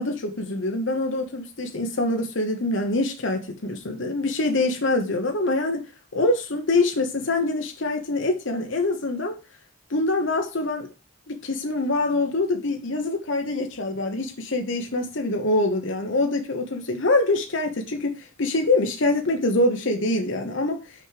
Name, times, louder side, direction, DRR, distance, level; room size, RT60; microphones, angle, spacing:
voice 1, 0.0-5.8 6.1-9.3 9.9-10.9 11.3-20.8, left 2 dB, 70° left, 1.1 m, -24 dB
6.4 x 4.8 x 6.5 m
head